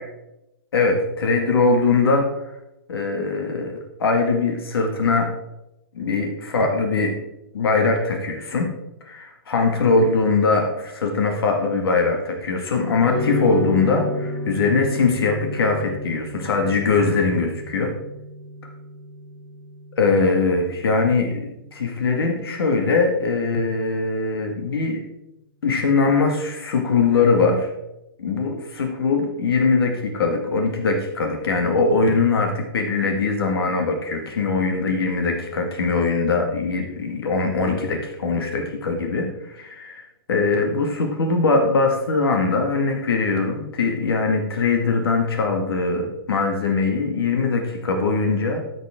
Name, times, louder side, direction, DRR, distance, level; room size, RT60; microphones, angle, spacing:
voice 1, 0.7-2.3 2.9-5.3 5.9-7.1 7.5-8.7 9.1-17.9 18.6-18.7 20.0-25.0 25.6-27.7 28.2-40.0 40.3-48.6, left 4 dB, 75° left, 3 dB, 2.2 m, -21 dB
sound 1, 13.1-21.6, left 1 dB, 10° left, 2.5 m, -32 dB
13.5 x 7.9 x 3.8 m, 0.89 s
hypercardioid pair, 175°, 13 cm